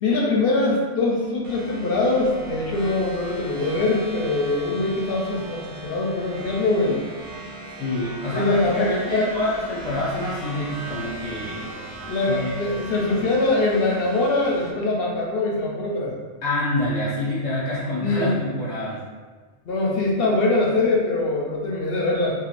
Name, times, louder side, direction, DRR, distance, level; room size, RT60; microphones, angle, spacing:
voice 1, 0.0-7.0 8.3-9.3 12.1-16.1 18.0-18.5 19.7-22.3, left 2 dB, 65° left, -2 dB, 0.7 m, -23 dB
sound 1, 1.4-14.7, right 1 dB, 55° right, 0.7 m, -38 dB
voice 2, 7.8-11.6 12.2-12.5 16.4-19.0, left 1 dB, 25° left, -9 dB, 0.7 m, -27 dB
3.2 x 2.5 x 2.5 m, 1.4 s
omnidirectional pair, 1.2 m